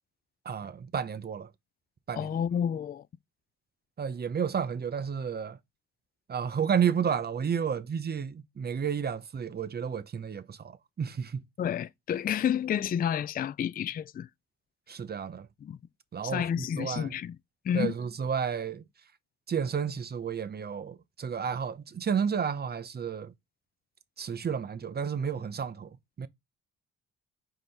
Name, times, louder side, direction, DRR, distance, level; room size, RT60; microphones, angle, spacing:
voice 1, 0.5-1.5 2.1-2.3 4.0-5.6 6.3-11.4 14.9-15.5 16.1-17.1 17.7-18.8 19.5-23.3 24.2-26.3, right 7 dB, 35° right, 0.7 m, -31 dB
voice 2, 2.1-3.0 11.6-14.3 15.6-15.8 16.2-17.4 17.6-17.9, left 9 dB, 30° left, 0.4 m, -30 dB
4.8 x 3.9 x 5.4 m
cardioid pair, 90°, 30 cm